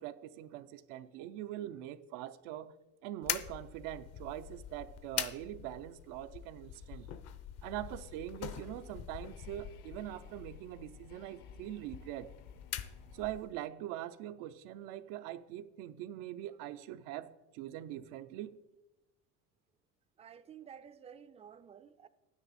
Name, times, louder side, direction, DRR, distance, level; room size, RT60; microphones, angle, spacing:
voice 1, 0.0-2.7 3.0-7.2 7.6-12.3 13.1-18.6, right 13 dB, 85° right, 0.6 m, -43 dB
sound 1, 3.2-13.6, left 10 dB, 50° left, 0.6 m, -44 dB
sound 2, 8.0-13.2, left 7 dB, 75° left, 1.0 m, -63 dB
voice 2, 20.2-22.1, right 8 dB, 20° right, 0.4 m, -53 dB
9.9 x 9.7 x 4.1 m
cardioid pair, 140°, 32 cm